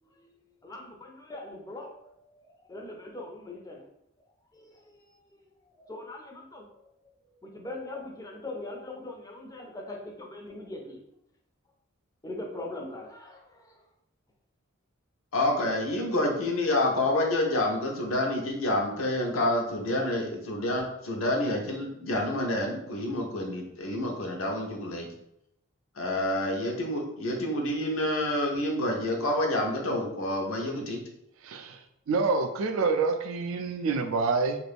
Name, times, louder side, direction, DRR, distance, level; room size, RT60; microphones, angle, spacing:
voice 1, 0.0-3.9 4.5-5.4 5.7-7.1 7.4-11.0 12.2-13.8, left 2 dB, 15° left, 1 dB, 0.4 m, -42 dB
voice 2, 15.3-25.1 26.0-31.0, left 1 dB, 80° left, 1 dB, 0.7 m, -28 dB
voice 3, 31.4-31.8 32.1-34.6, right 4 dB, 70° right, 7 dB, 0.4 m, -27 dB
2.5 x 2.4 x 3.3 m, 0.80 s
head